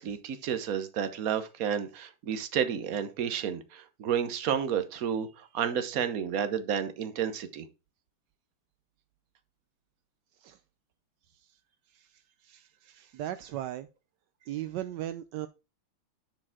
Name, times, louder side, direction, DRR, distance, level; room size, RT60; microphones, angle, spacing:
voice 1, 0.0-7.7, right 8 dB, 50° right, 1.1 m, -31 dB
voice 2, 13.1-13.9 14.5-15.5, right 13 dB, 75° right, 1.0 m, -36 dB
11.0 x 4.9 x 3.6 m
omnidirectional pair, 2.4 m